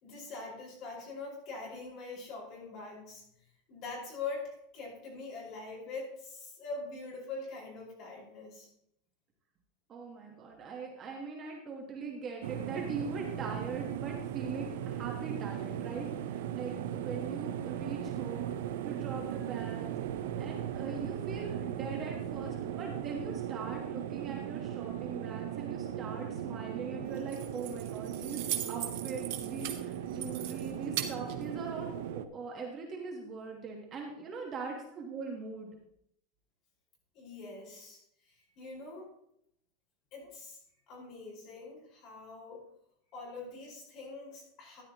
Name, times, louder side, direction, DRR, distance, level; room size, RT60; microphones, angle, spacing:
voice 1, 0.0-3.2 3.7-8.7 37.1-38.0 38.2-39.1 40.1-40.6 40.9-42.6 43.1-44.8, left 3 dB, 35° left, -3 dB, 4.7 m, -43 dB
voice 2, 9.9-18.6 18.8-19.9 20.4-35.7, right 4 dB, 20° right, 0 dB, 1.2 m, -41 dB
sound 1, 12.4-32.3, right 10 dB, 70° right, 0.6 m, -38 dB
Keys jangling, 27.1-32.1, right 11 dB, 55° right, 1.2 m, -40 dB
13.5 x 10.5 x 2.9 m, 0.76 s
supercardioid pair, 180°, 0 cm